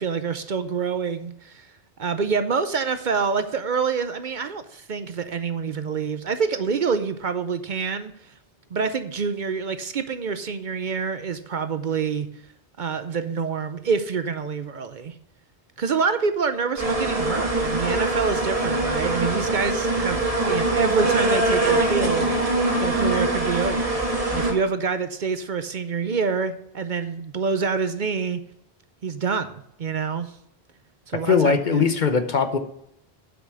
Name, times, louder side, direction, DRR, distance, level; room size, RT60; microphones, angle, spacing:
voice 1, 0.0-1.7 2.0-8.1 8.7-12.3 12.8-15.1 15.8-22.4 22.8-28.4 29.0-30.3 31.1-31.8, right 5 dB, 55° right, 11 dB, 0.7 m, -26 dB
sound 1, 16.8-24.5, right 2 dB, 35° right, 1.9 m, -23 dB
voice 2, 31.3-32.6, left 5 dB, 50° left, 8 dB, 1.0 m, -20 dB
8.1 x 6.1 x 6.5 m, 0.75 s
omnidirectional pair, 1.0 m